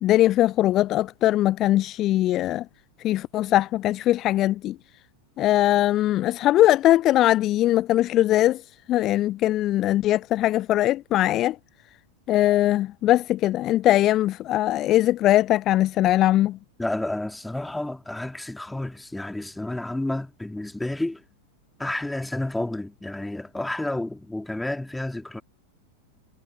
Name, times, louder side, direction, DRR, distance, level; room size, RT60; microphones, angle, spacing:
voice 1, 0.0-2.7 3.0-4.8 5.4-8.6 8.9-11.6 12.3-16.6, left 14 dB, 35° left, 0.4 m, -21 dB
voice 2, 16.8-21.2 21.8-25.4, left 1 dB, 5° left, 3.0 m, -30 dB
figure-of-eight pair, 90°, 0 cm